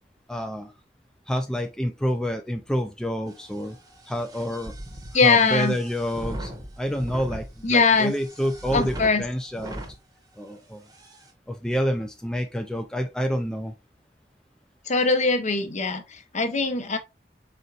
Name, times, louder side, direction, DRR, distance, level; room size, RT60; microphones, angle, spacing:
voice 1, 0.3-0.7 1.3-3.8 4.1-4.7 5.2-6.5 6.8-9.8 10.4-10.8 11.5-13.7, equal, 5° left, 0.3 m, -28 dB
sound 1, 3.3-10.0 10.5-10.6 10.9-11.3, right 1 dB, 20° right, 0.9 m, -39 dB
voice 2, 5.1-5.8 7.6-8.1 8.7-9.3 14.9-17.0, left 4 dB, 40° left, 0.7 m, -21 dB
4.2 x 3.9 x 2.4 m
head